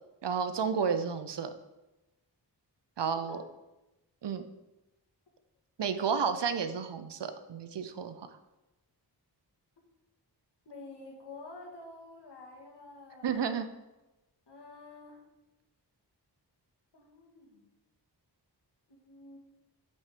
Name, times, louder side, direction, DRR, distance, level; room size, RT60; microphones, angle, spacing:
voice 1, 0.2-1.5 3.0-3.4 4.2-4.4 5.8-8.3 13.2-13.7, right 6 dB, 80° right, 9 dB, 0.7 m, -31 dB
voice 2, 10.7-13.7 14.5-15.2 16.9-17.7 18.9-19.4, left 2 dB, 75° left, -1 dB, 1.9 m, -49 dB
8.6 x 4.3 x 5.0 m, 1.0 s
wide cardioid pair, 80°, 42 cm